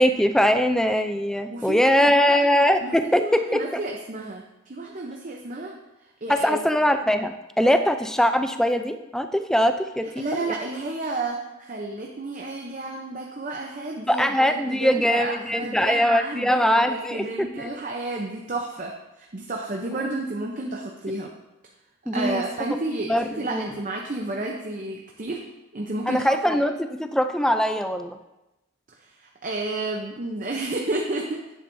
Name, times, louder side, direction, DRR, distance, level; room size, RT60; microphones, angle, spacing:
voice 1, 0.0-3.7 6.3-10.1 10.5-10.6 14.1-17.7 22.1-22.4 23.1-23.6 26.1-28.2, equal, 5° left, 7 dB, 0.4 m, -22 dB
voice 2, 1.5-2.4 2.8-5.7 6.2-6.7 10.2-18.9 19.2-21.3 22.1-25.4 25.7-26.6 29.0-31.4, right 2 dB, 40° right, 0 dB, 0.7 m, -31 dB
10.5 x 8.5 x 2.7 m, 0.98 s
head